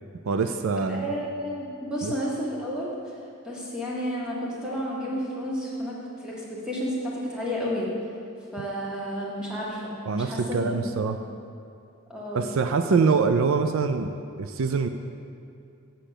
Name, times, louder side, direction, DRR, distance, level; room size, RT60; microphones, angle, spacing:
voice 1, 0.3-1.2 2.0-2.1 10.1-11.2 12.3-14.1 14.4-14.9, right 5 dB, 70° right, 8 dB, 0.4 m, -24 dB
voice 2, 0.9-3.0 3.4-7.9 8.5-9.9 10.2-10.8 12.1-12.5, equal, 5° right, -5 dB, 1.8 m, -31 dB
7.8 x 7.6 x 6.7 m, 2.6 s
head